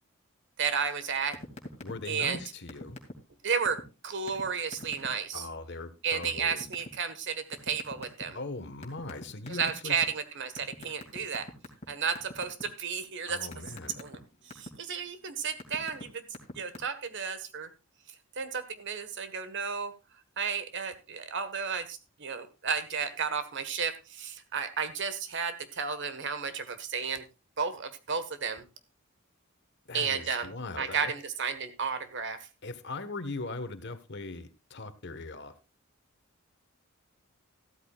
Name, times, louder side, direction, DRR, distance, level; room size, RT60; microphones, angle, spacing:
voice 1, 0.6-1.4 2.1-2.4 3.4-5.4 6.0-8.4 9.5-11.5 11.9-13.5 14.0-16.3 16.5-17.7 18.1-19.9 20.4-27.2 27.6-28.6 29.9-30.5 30.8-32.4, right 6 dB, 60° right, 1.4 m, -33 dB
sound 1, 1.3-1.9 2.2-2.4 2.7-3.3 3.6-3.8 4.3-4.4 4.7-5.1 6.2-6.9 7.5-8.4 8.8-10.0 10.6-11.8 12.1-12.6 13.0-14.7 15.3-16.0 16.3-16.8, left 2 dB, 30° left, 2.6 m, -42 dB
voice 2, 1.8-3.0 5.3-6.7 8.3-10.0 13.3-14.0 29.9-31.1 32.6-35.5, left 3 dB, 55° left, 1.4 m, -40 dB
14.5 x 13.0 x 2.4 m
head